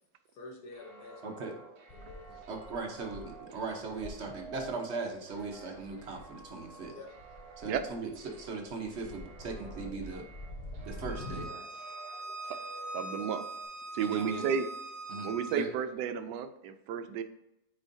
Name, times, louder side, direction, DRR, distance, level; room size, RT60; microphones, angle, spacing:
voice 1, 0.3-1.5 1.9-2.5 6.9-7.1 11.4-11.7, left 3 dB, 65° left, 1 dB, 1.7 m, -49 dB
sound 1, 0.7-13.7, right 4 dB, 65° right, 1.4 m, -51 dB
voice 2, 1.2-1.5 2.5-6.9 7.6-10.2 10.8-11.5 14.0-14.5 15.1-15.7, right 3 dB, 45° right, 3 dB, 1.1 m, -39 dB
sound 2, 1.9-11.5, left 1 dB, 45° left, 0.6 m, -47 dB
Bowed string instrument, 11.1-15.5, right 2 dB, 20° right, 1.8 m, -42 dB
voice 3, 12.9-13.5 13.9-14.7 15.2-17.2, right 7 dB, 85° right, 10 dB, 1.2 m, -32 dB
8.8 x 4.5 x 2.7 m, 0.90 s
omnidirectional pair, 1.8 m